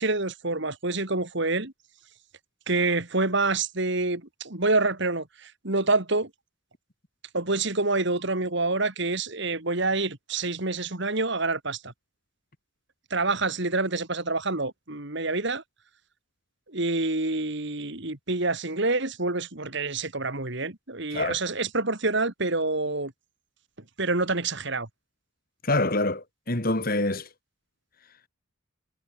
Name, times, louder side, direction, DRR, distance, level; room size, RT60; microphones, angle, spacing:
voice 1, 0.0-1.7 2.7-6.3 7.3-11.9 13.1-15.6 16.7-23.1 24.0-24.9, right 3 dB, 55° right, 2.6 m, -27 dB
voice 2, 25.6-27.3, left 2 dB, 45° left, 2.8 m, -26 dB
head